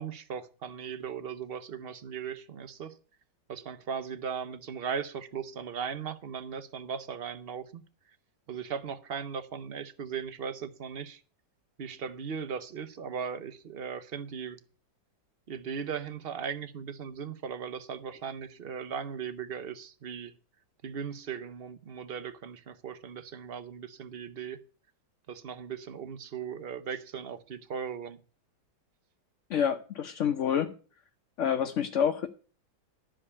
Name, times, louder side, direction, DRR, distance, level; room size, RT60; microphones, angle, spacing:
voice 1, 0.0-3.0 3.5-7.8 8.5-11.2 11.8-14.6 15.5-20.3 20.8-24.6 25.3-28.2, right 7 dB, 50° right, 13 dB, 0.7 m, -38 dB
voice 2, 29.5-30.7 31.4-32.3, left 8 dB, 55° left, 6 dB, 0.9 m, -28 dB
12.5 x 5.0 x 8.3 m, 0.38 s
omnidirectional pair, 2.0 m